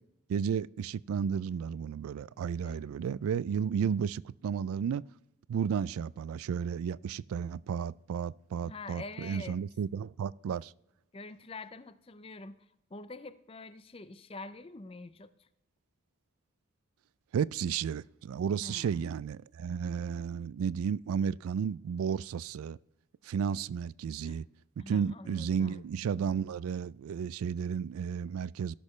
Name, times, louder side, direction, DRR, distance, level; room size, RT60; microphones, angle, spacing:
voice 1, 0.3-5.0 5.5-10.7 17.3-22.8 23.2-24.4 24.8-28.8, right 7 dB, 80° right, 0.3 m, -33 dB
voice 2, 2.6-2.9 8.6-9.6 11.1-12.5 12.9-15.5 18.6-19.1 24.2-24.4 24.8-25.8, left 3 dB, 25° left, 0.5 m, -46 dB
17.5 x 6.4 x 3.2 m
head